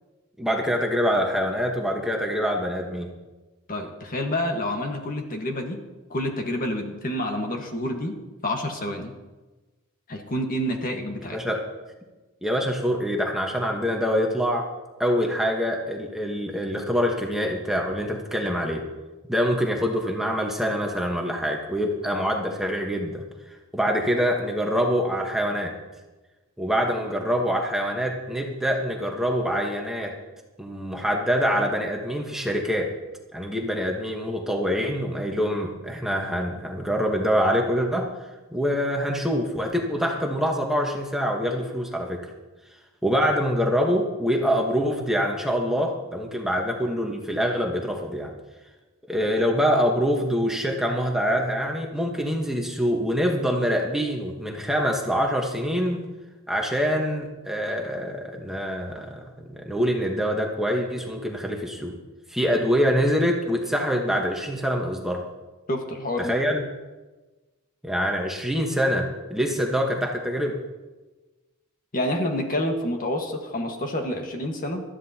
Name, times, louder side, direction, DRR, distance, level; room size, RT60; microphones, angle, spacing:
voice 1, 0.4-3.1 11.3-11.6 12.4-14.7 15.0-18.8 19.3-23.2 23.7-25.7 26.6-30.1 30.6-32.9 33.3-38.1 38.5-42.2 43.0-48.3 49.1-56.1 56.5-61.9 62.3-65.2 66.2-66.6 67.8-70.6, equal, ahead, 0 dB, 1.2 m, -25 dB
voice 2, 3.7-5.8 6.1-8.1 8.4-9.1 10.1-11.4 65.7-66.4 71.9-74.8, left 1 dB, 40° left, 3 dB, 1.5 m, -28 dB
20.0 x 13.0 x 2.9 m, 1.2 s
head